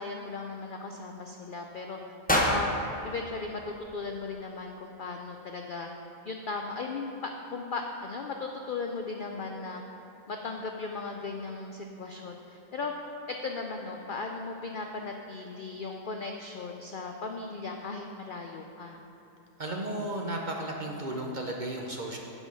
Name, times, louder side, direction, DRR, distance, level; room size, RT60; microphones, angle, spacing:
voice 1, 0.0-2.0 2.5-5.9 6.2-9.8 10.3-12.9 13.3-19.0, left 4 dB, 65° left, 3 dB, 0.5 m, -37 dB
sound 1, 2.3-4.4, equal, 10° left, 0.6 m, -30 dB
voice 2, 19.6-22.2, right 1 dB, 45° right, 0 dB, 0.6 m, -34 dB
10.0 x 3.8 x 7.4 m, 2.9 s
omnidirectional pair, 1.4 m